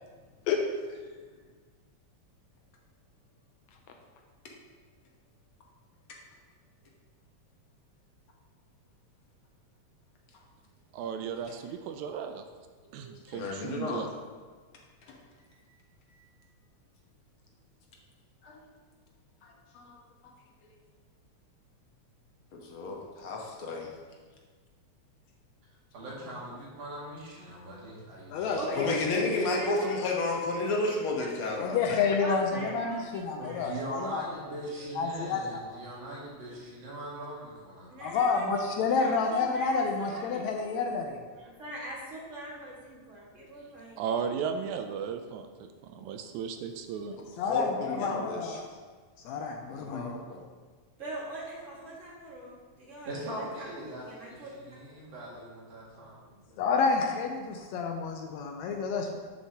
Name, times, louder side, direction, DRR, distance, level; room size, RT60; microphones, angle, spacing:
voice 1, 10.9-12.4 12.9-14.1 44.0-47.2, right 7 dB, 85° right, 7 dB, 1.9 m, -35 dB
voice 2, 13.0-14.0 15.1-15.2 16.1-16.2 18.4-18.6 19.4-20.0 22.5-23.9 28.8-31.8 47.5-48.6 49.7-50.4, left 2 dB, 60° left, -1 dB, 1.6 m, -32 dB
voice 3, 25.9-28.8 29.3-29.4 32.5-32.6 33.4-38.2 53.1-56.4, right 1 dB, 60° right, -6 dB, 3.3 m, -41 dB
voice 4, 28.3-29.5 31.6-34.2 35.0-35.8 38.0-41.2 47.4-48.6 49.3-50.2 56.6-59.2, left 5 dB, 80° left, 3 dB, 1.9 m, -29 dB
voice 5, 29.6-29.9 30.3-30.4 30.9-31.0 31.2-31.3 32.2-33.7 34.4-34.5 34.8-34.9 37.9-38.6 38.9-40.7 41.3-44.0 51.0-54.5, right 1 dB, 30° right, -4 dB, 1.6 m, -42 dB
11.0 x 6.7 x 2.9 m, 1.4 s
omnidirectional pair, 3.3 m